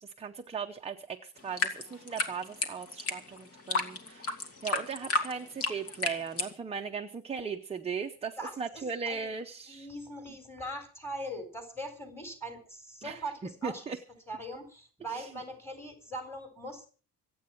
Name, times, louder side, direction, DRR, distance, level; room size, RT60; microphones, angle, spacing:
voice 1, 0.0-9.9 13.0-13.2 13.6-14.0 15.1-15.3, right 5 dB, 15° right, 4 dB, 0.7 m, -38 dB
sound 1, 1.4-6.5, left 3 dB, 40° left, 2.3 m, -32 dB
voice 2, 8.4-9.3 9.7-13.8 14.3-16.9, right 1 dB, 5° left, 4 dB, 4.0 m, -41 dB
26.0 x 8.7 x 4.6 m, 0.39 s
cardioid pair, 170°, 36 cm